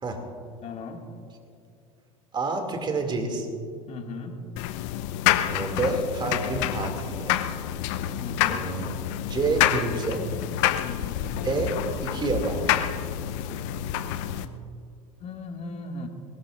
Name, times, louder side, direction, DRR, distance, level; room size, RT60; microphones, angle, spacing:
voice 1, 0.6-1.1 3.9-4.4 8.2-8.7 10.8-11.3 15.2-16.1, left 4 dB, 40° left, 2 dB, 2.1 m, -37 dB
voice 2, 2.3-3.5 5.5-7.4 8.5-8.9 9.3-10.3 11.2-11.8 12.0-12.8, right 3 dB, 25° right, 4 dB, 2.5 m, -28 dB
sound 1, 4.6-14.4, left 12 dB, 60° left, 0.7 m, -28 dB
22.5 x 18.5 x 2.5 m, 2.4 s
hypercardioid pair, 75°, 18 cm